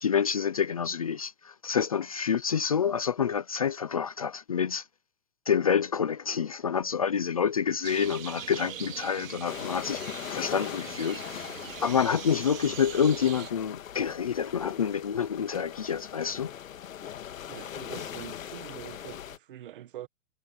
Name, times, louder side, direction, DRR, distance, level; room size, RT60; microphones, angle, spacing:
voice 1, 0.0-4.8 5.5-10.0 10.3-11.5 11.8-16.5, left 7 dB, 30° left, 0.5 m, -28 dB
sound 1, 7.8-13.5, right 9 dB, 75° right, 3.2 m, -42 dB
sound 2, 9.4-19.4, left 10 dB, 85° left, 1.7 m, -40 dB
voice 2, 17.5-20.1, right 12 dB, 40° right, 1.6 m, -44 dB
hypercardioid pair, 175°, 39 cm